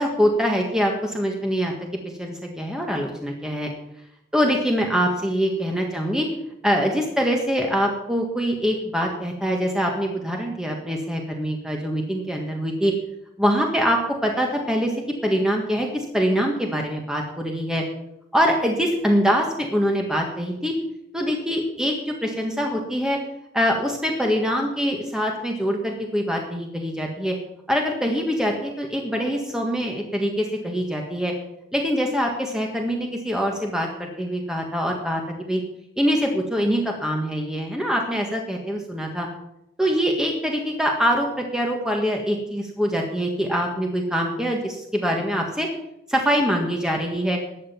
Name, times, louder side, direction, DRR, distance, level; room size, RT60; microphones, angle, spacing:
voice 1, 0.0-1.7 2.2-3.7 4.3-6.3 6.6-12.9 13.4-14.9 15.2-17.8 18.3-20.7 21.1-23.2 23.5-27.3 27.7-31.3 31.7-35.6 36.0-39.3 39.8-45.7 46.1-47.4, equal, 5° right, 1 dB, 1.6 m, -24 dB
14.0 x 10.0 x 5.9 m, 0.82 s
head